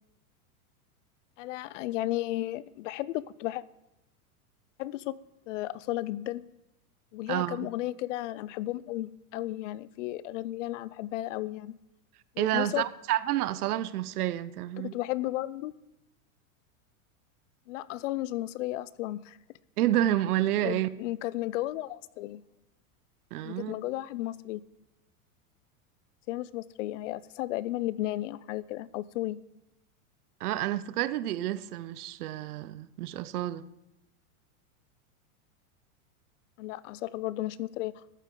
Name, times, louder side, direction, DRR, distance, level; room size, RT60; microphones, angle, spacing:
voice 1, 1.4-3.6 4.8-5.1 5.5-6.4 7.1-11.7 12.4-12.9 14.8-15.7 17.7-19.4 20.6-22.4 23.4-24.6 26.3-29.4 36.6-38.0, left 16 dB, 60° left, 0.5 m, -34 dB
voice 2, 7.3-7.7 12.4-14.9 19.8-20.9 23.3-23.7 30.4-33.7, right 13 dB, 85° right, 0.7 m, -29 dB
14.0 x 10.5 x 3.8 m
supercardioid pair, 150°, 44 cm